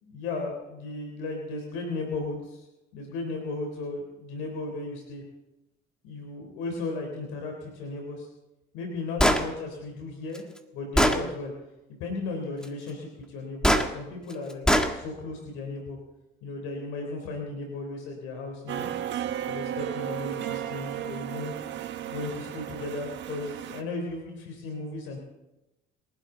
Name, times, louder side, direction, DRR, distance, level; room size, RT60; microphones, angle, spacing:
voice 1, 0.0-2.7 2.9-5.2 6.0-8.3 8.7-10.4 10.7-11.5 12.0-14.7 14.9-16.0 16.4-18.9 19.5-21.5 22.0-25.2, left 3 dB, 85° left, 2 dB, 3.6 m, -35 dB
Gunshot gunfire, 9.2-9.4 10.3-10.4 11.0-11.2 13.6-13.9 14.7-14.9, equal, 5° left, 1.7 m, -20 dB
sound 1, 18.7-23.8, right 11 dB, 60° right, 1.4 m, -34 dB
29.5 x 12.0 x 3.9 m, 0.96 s
cardioid pair, 105°, 21 cm